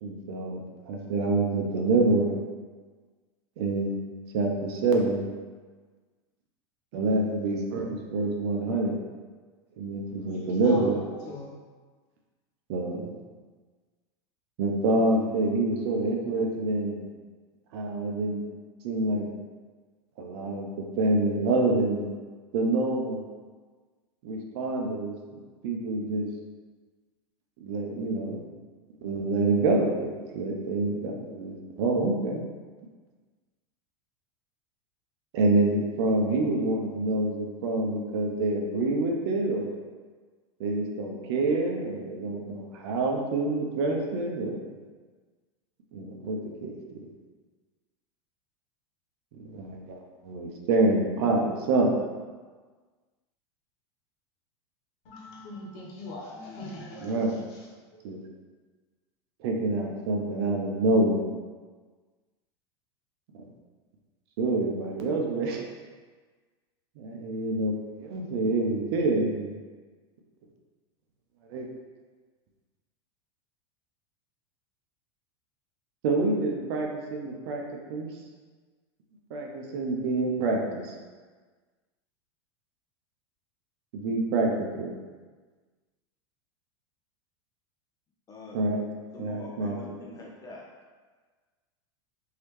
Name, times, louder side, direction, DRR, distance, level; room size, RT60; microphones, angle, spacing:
voice 1, 0.0-2.4 3.6-4.0 4.3-5.2 6.9-9.0 9.8-11.0 12.7-13.1 14.6-17.0 17.7-18.4 18.8-19.3 20.2-22.1 22.5-23.3 24.2-26.3 27.6-28.4 29.0-32.4 35.3-39.9 40.6-44.7 45.9-47.0 49.3-52.0 57.0-57.4 58.0-58.2 59.4-61.3 63.4-63.5 64.4-65.6 67.0-69.5 71.5-71.7 76.0-77.6 77.9-78.1 79.3-80.9 83.9-85.0 88.5-88.8 89.2-89.8, right 2 dB, 65° right, 1 dB, 0.7 m, -27 dB
voice 2, 10.1-11.5 55.0-57.7 57.9-58.0, left 1 dB, 55° left, -4 dB, 1.2 m, -42 dB
voice 3, 88.3-88.6 89.1-90.7, left 2 dB, 25° left, -3 dB, 0.5 m, -44 dB
3.1 x 2.8 x 3.1 m, 1.4 s
hypercardioid pair, 110°, 15 cm